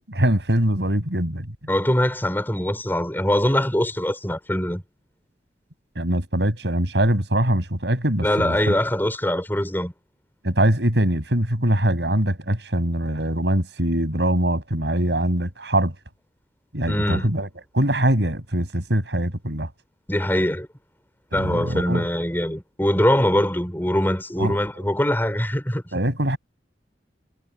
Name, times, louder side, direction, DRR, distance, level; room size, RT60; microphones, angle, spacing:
voice 1, 0.1-1.5 6.0-8.6 10.4-15.9 16.7-17.5 17.7-19.7 21.3-22.0 24.4-24.5 25.9-26.4, right 1 dB, 80° right, 6.2 m, -22 dB
voice 2, 1.7-4.8 8.2-9.9 16.9-17.3 20.1-20.7 21.3-25.8, left 1 dB, 10° left, 4.8 m, -22 dB
head